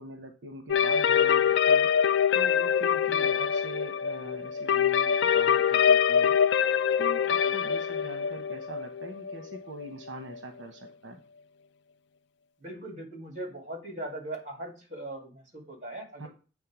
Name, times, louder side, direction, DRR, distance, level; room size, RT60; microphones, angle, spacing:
voice 1, 0.0-1.9 2.3-6.3 7.0-11.2 16.2-16.3, right 1 dB, 70° right, 5 dB, 0.9 m, -43 dB
sound 1, 0.7-10.4, left 8 dB, 65° left, 0.3 m, -24 dB
voice 2, 3.0-3.4 7.4-7.7 12.6-16.3, right 1 dB, 40° right, 2 dB, 2.3 m, -40 dB
8.4 x 3.6 x 6.0 m, 0.35 s
head